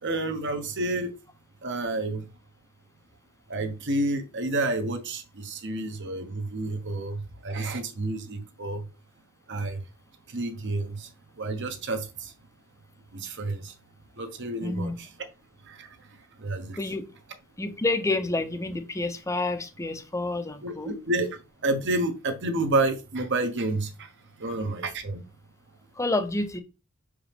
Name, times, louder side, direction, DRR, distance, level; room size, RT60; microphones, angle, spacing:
voice 1, 0.0-1.1 1.6-2.3 3.5-8.8 9.5-9.8 10.3-11.1 11.4-12.3 13.1-13.7 14.2-15.1 15.7-15.9 16.4-16.8 20.6-24.1 24.4-25.2, right 2 dB, 55° right, 1.1 m, -29 dB
voice 2, 14.6-15.0 16.8-17.0 17.6-20.9 26.0-26.6, left 2 dB, 15° left, 0.7 m, -29 dB
6.0 x 4.9 x 3.5 m
head